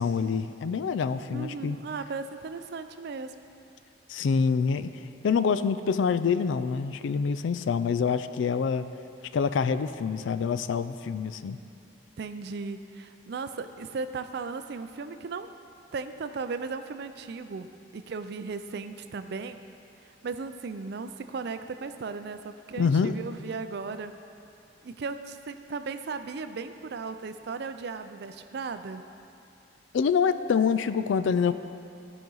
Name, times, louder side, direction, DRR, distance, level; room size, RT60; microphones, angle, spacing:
voice 1, 0.0-1.8 4.1-8.9 9.3-11.6 22.8-23.1 29.9-31.5, left 6 dB, 70° left, 12 dB, 0.3 m, -26 dB
voice 2, 1.3-3.3 12.2-15.5 15.9-19.7 20.0-24.1 24.8-29.0, right 4 dB, 55° right, 9 dB, 0.4 m, -36 dB
15.0 x 5.1 x 3.9 m, 2.6 s
head